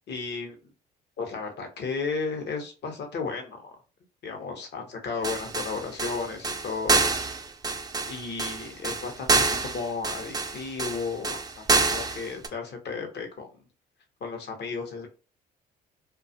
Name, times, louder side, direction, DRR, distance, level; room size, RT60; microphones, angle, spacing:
voice 1, 0.1-0.6 1.2-3.7 4.2-7.0 8.1-13.7 14.2-15.1, left 4 dB, 55° left, 4 dB, 0.8 m, -34 dB
sound 1, 5.2-12.5, right 3 dB, 20° right, 0.4 m, -26 dB
2.4 x 2.3 x 2.6 m, 0.34 s
hypercardioid pair, 55°, 21 cm